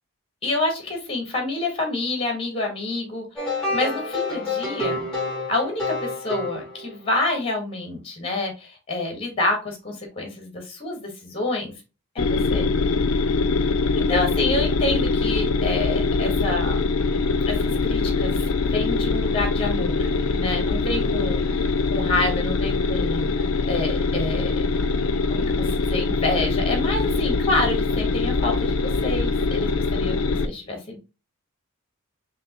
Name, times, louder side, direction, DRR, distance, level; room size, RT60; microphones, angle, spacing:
voice 1, 0.4-5.1 5.5-11.7 12.1-12.7 14.0-16.8 17.5-20.1 20.3-24.6 25.3-31.0, left 2 dB, 25° left, 2 dB, 1.4 m, -28 dB
sound 1, 3.4-7.2, left 2 dB, 5° left, 2.4 m, -28 dB
sound 2, 12.2-30.5, left 3 dB, 75° left, 0.5 m, -23 dB
4.9 x 3.0 x 2.9 m, 0.29 s
head